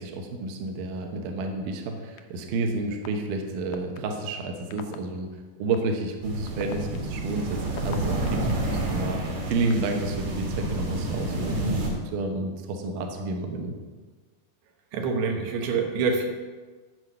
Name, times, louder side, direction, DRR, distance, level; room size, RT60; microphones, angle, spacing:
voice 1, 0.0-5.3 5.6-13.7, right 3 dB, 70° right, 3 dB, 2.4 m, -30 dB
sound 1, 2.2-2.3 3.0-3.1 3.7-4.0 4.7-5.0 5.7-5.8 6.5-8.5 9.2-10.0, left 12 dB, 85° left, 1.8 m, -40 dB
sound 2, 6.2-11.9, right 1 dB, 50° right, 2.6 m, -29 dB
voice 2, 14.9-16.3, right 4 dB, 85° right, 3 dB, 3.1 m, -26 dB
12.5 x 4.7 x 6.8 m, 1.4 s
omnidirectional pair, 4.4 m